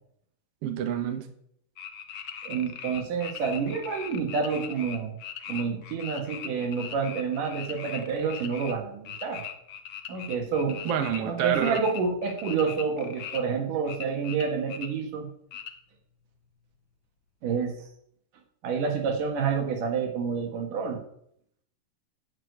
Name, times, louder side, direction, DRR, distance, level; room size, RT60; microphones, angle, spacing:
voice 1, 0.6-1.3 10.9-11.8, right 8 dB, 60° right, 7 dB, 1.7 m, -28 dB
sound 1, 1.8-8.7 9.0-13.4 13.9-14.9 15.5-15.7, left 8 dB, 75° left, 1.1 m, -40 dB
voice 2, 2.4-5.2 5.5-9.4 10.1-10.8 11.3-15.3 17.4-17.7 18.6-21.0, right 5 dB, 75° right, 3 dB, 3.5 m, -28 dB
9.6 x 7.6 x 8.1 m, 0.71 s
omnidirectional pair, 3.7 m